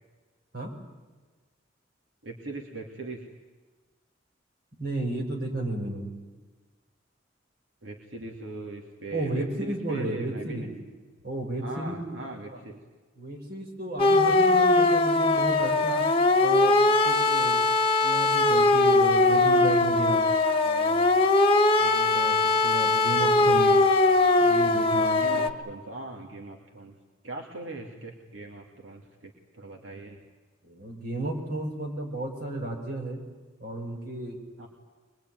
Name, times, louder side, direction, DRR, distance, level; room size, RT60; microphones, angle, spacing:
voice 1, 2.2-3.2 7.8-10.7 11.6-12.8 25.2-26.9 27.2-30.2 34.6-34.7, right 3 dB, 80° right, 0 dB, 2.9 m, -40 dB
voice 2, 4.8-6.1 9.1-10.7 11.2-12.6 13.2-16.0 16.4-17.7 18.0-20.2 20.6-21.1 21.8-23.8 24.4-25.4 30.6-33.2 33.6-34.4, right 1 dB, 50° right, 1 dB, 6.0 m, -33 dB
sound 1, 14.0-25.5, left 2 dB, 30° left, 1.5 m, -21 dB
24.0 x 22.0 x 9.4 m, 1.3 s
head